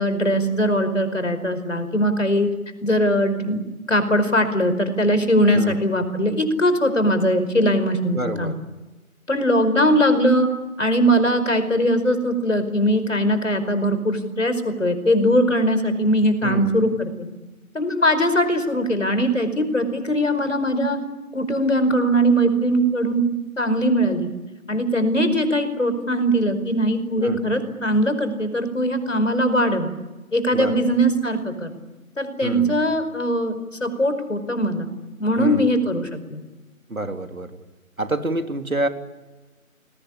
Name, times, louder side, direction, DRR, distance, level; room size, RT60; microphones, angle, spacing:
voice 1, 0.0-2.5 2.8-8.5 9.3-10.5 10.8-17.3 17.7-21.0 21.3-23.2 23.6-24.3 24.7-29.9 30.3-31.7 32.2-34.9 35.2-36.4, equal, 60° left, 10 dB, 5.0 m, -20 dB
voice 2, 8.1-8.5 16.4-16.8 27.2-27.5 30.5-30.8 32.4-32.8 35.4-35.7 36.9-37.6 38.0-38.9, right 2 dB, 70° right, 6 dB, 3.5 m, -27 dB
29.0 x 21.5 x 8.6 m, 1.2 s
figure-of-eight pair, 175°, 43 cm